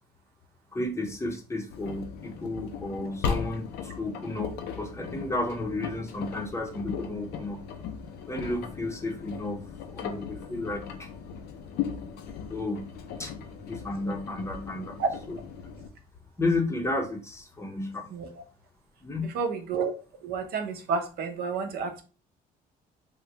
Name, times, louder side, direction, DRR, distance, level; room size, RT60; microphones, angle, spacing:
voice 1, 0.7-7.7 8.3-9.6 9.9-11.1 12.5-12.9 13.2-13.3 13.7-15.0 15.3-15.4 16.4-18.1 19.0-19.3, left 2 dB, 15° left, 3 dB, 0.6 m, -32 dB
Engine, 1.7-15.9, left 7 dB, 75° left, 0.5 m, -37 dB
voice 2, 19.3-19.9 20.2-22.0, right 5 dB, 65° right, 5 dB, 0.6 m, -30 dB
3.6 x 2.2 x 2.8 m, 0.35 s
cardioid pair, 110°, 17 cm